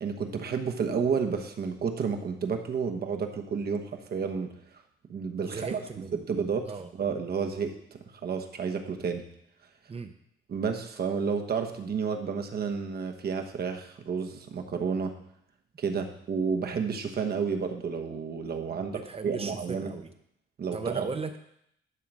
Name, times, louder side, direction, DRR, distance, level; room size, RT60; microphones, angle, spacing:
voice 1, 0.0-4.5 5.1-5.8 6.3-6.7 6.9-9.2 10.5-15.1 15.8-19.9 20.6-21.1, right 6 dB, 50° right, 5 dB, 1.1 m, -31 dB
voice 2, 5.4-6.3 6.7-6.9 9.9-10.1 18.7-20.1 20.7-21.4, right 4 dB, 30° right, 7 dB, 0.7 m, -37 dB
11.0 x 3.9 x 6.2 m, 0.75 s
cardioid pair, 90°, 20 cm